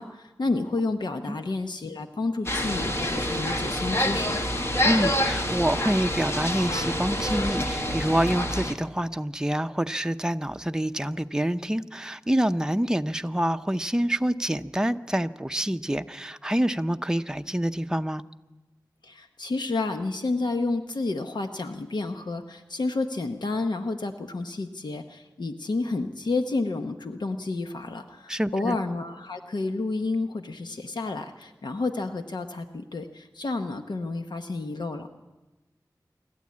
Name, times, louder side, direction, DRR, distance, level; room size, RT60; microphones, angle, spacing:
voice 1, 0.0-4.4 19.0-35.1, left 3 dB, 85° left, 6 dB, 0.9 m, -30 dB
sound 1, 2.5-8.7, left 1 dB, 40° left, 1.6 m, -27 dB
voice 2, 4.8-18.2 28.3-28.8, right 1 dB, 10° right, 8 dB, 0.6 m, -27 dB
26.5 x 12.0 x 8.5 m, 1.1 s
wide cardioid pair, 70°, 7 cm